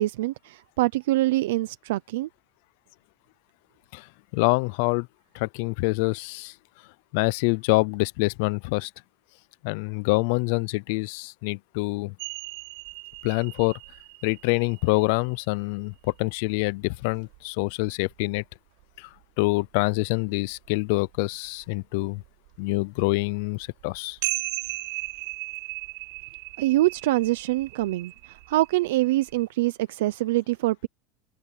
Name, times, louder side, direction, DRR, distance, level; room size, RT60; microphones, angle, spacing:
voice 1, 0.0-2.3 26.6-30.9, right 17 dB, 90° right, 0.6 m, -25 dB
voice 2, 4.3-5.1 5.3-6.5 7.1-8.9 9.6-12.1 13.2-13.8 14.2-18.4 19.0-19.1 19.4-22.2 22.6-24.2, left 26 dB, 65° left, 0.5 m, -26 dB
sound 1, 12.2-18.4 18.8-18.9 19.2-20.7 21.0-21.2 21.4-29.4, right 25 dB, 70° right, 3.7 m, -37 dB
supercardioid pair, 150°, 0 cm